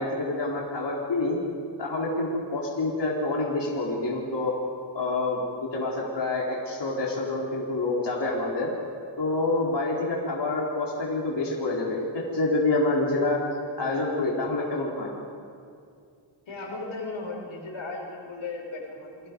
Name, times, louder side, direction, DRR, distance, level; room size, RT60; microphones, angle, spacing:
voice 1, 0.0-1.4 1.8-4.5 4.9-8.7 9.2-13.4 13.8-15.1, left 2 dB, 60° left, -4 dB, 4.0 m, -27 dB
voice 2, 16.5-19.3, left 3 dB, 90° left, 0 dB, 5.9 m, -36 dB
28.5 x 24.5 x 5.3 m, 2.4 s
wide cardioid pair, 95°, 46 cm